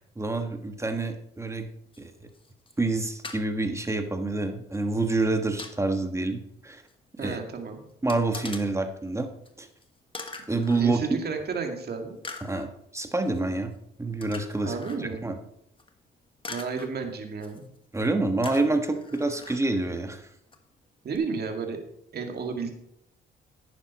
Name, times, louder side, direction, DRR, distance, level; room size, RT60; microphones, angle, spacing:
voice 1, 0.2-1.7 2.8-6.8 7.2-7.4 8.0-9.3 9.6-9.7 10.5-11.2 12.4-13.7 14.0-14.7 15.2-15.4 17.9-20.2, right 2 dB, 15° right, 6 dB, 1.4 m, -27 dB
sound 1, 1.9-2.0 2.3-2.9 3.2-3.4 4.7-4.8 5.2-5.8 6.9-7.0 7.2-7.3 8.1-8.6 9.4-9.5 9.8-9.9 10.1-10.8 11.6-11.7 12.2-12.7 13.2-13.4 14.2-15.0 15.8-15.9 16.4-16.9 17.4-17.8 18.4-19.6 20.5-20.6 21.1-21.2, left 3 dB, 25° left, 1.4 m, -42 dB
voice 2, 7.2-7.8 10.7-12.2 14.6-15.2 16.5-17.7 21.0-21.8 22.1-22.7, right 5 dB, 55° right, 4 dB, 2.1 m, -32 dB
11.0 x 9.4 x 4.2 m, 0.75 s
cardioid pair, 90°, 20 cm